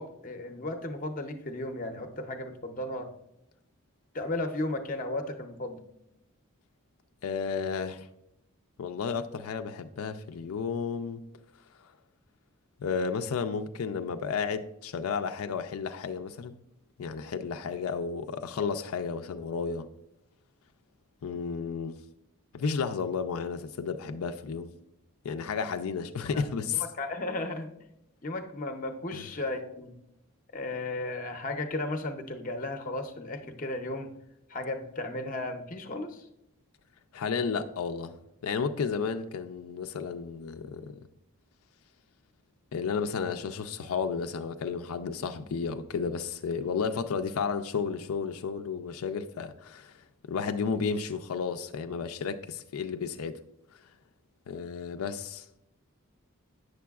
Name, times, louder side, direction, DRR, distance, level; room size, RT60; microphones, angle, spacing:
voice 1, 0.0-3.1 4.1-5.8 26.3-26.4 27.0-27.7 28.2-29.9 30.5-34.1 34.5-36.3, left 2 dB, 35° left, 0.6 m, -35 dB
voice 2, 7.2-8.1 8.8-11.2 11.8-11.9 12.8-16.5 17.0-19.9 21.2-22.0 22.5-24.7 25.2-26.8 29.1-29.3 37.1-38.2 38.4-41.0 42.7-50.0 50.3-53.4 54.5-55.5, left 5 dB, 80° left, 0.4 m, -32 dB
8.4 x 6.5 x 2.3 m
head